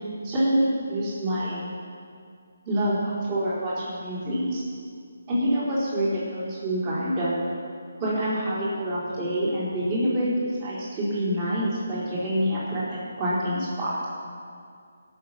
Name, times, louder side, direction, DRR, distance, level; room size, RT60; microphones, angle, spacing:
voice 1, 0.2-1.6 2.7-4.6 5.3-7.4 8.0-14.0, equal, 30° right, -8 dB, 4.2 m, -26 dB
18.0 x 6.7 x 7.4 m, 2.3 s
figure-of-eight pair, 155°, 0 cm